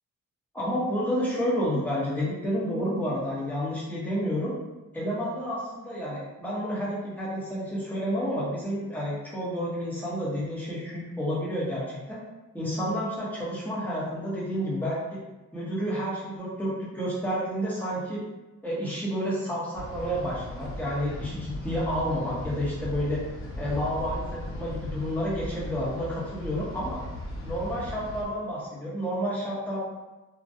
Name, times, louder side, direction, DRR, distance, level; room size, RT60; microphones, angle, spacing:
voice 1, 0.5-4.5 4.9-11.8 12.1-12.2 12.5-15.2 15.5-18.2 18.6-23.2 23.6-27.0 27.4-29.8, equal, 5° left, -7 dB, 1.0 m, -30 dB
sound 1, 19.7-28.2, left 1 dB, 45° left, 0.7 m, -38 dB
2.4 x 2.2 x 2.6 m, 1.1 s
cardioid pair, 90°, 30 cm